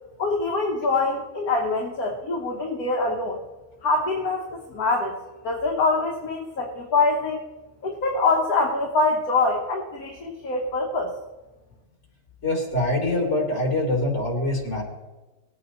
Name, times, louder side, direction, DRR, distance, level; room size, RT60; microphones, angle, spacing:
voice 1, 0.2-3.4 3.8-5.1 5.4-7.4 7.8-11.1, left 3 dB, 70° left, -1 dB, 1.9 m, -24 dB
voice 2, 12.4-14.8, left 1 dB, 50° left, -2 dB, 3.9 m, -24 dB
20.0 x 8.5 x 3.2 m, 1.1 s
omnidirectional pair, 1.6 m